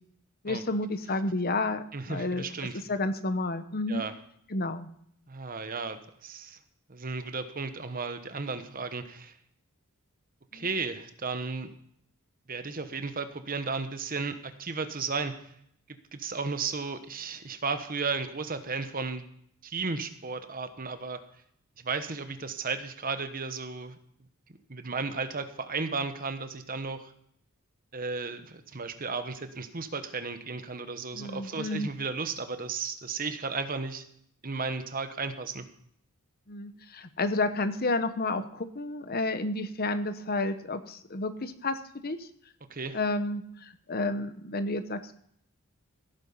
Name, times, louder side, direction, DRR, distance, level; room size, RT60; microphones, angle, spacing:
voice 1, 0.4-2.4 2.7-4.0 4.5-4.9 10.5-10.7 31.1-31.9 36.5-42.3 42.9-45.2, left 2 dB, 45° left, 11 dB, 1.0 m, -31 dB
voice 2, 1.9-2.8 3.9-4.1 5.3-6.6 6.9-9.3 10.5-11.7 12.5-15.5 16.1-19.2 19.6-21.2 21.8-24.0 24.7-27.1 27.9-34.0 34.4-35.7 42.7-43.0, right 4 dB, 40° right, 10 dB, 1.1 m, -34 dB
16.0 x 9.0 x 5.6 m, 0.67 s
head